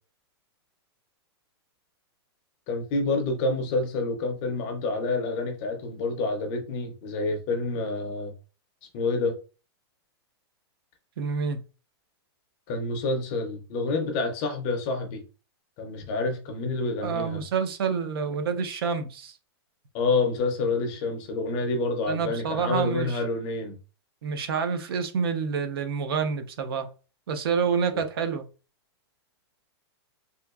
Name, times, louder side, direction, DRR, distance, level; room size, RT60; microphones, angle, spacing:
voice 1, 2.7-8.3 8.9-9.3 12.7-15.2 15.8-17.4 19.9-23.8 27.9-28.0, left 3 dB, 20° left, 0.4 m, -28 dB
voice 2, 11.2-11.6 17.0-19.3 22.1-23.2 24.2-26.9 27.3-28.4, right 6 dB, 60° right, 0.6 m, -28 dB
3.4 x 2.8 x 2.3 m
supercardioid pair, 175°, 14 cm